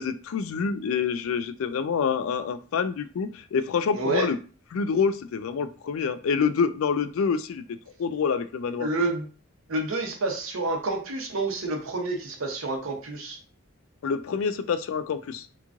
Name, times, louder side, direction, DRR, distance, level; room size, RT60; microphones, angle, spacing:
voice 1, 0.0-4.4 4.7-8.9 14.0-15.5, left 6 dB, 75° left, 12 dB, 0.3 m, -27 dB
voice 2, 3.9-4.3 8.8-9.3 9.7-13.4, right 2 dB, 75° right, 3 dB, 0.8 m, -28 dB
3.0 x 2.5 x 3.5 m, 0.37 s
head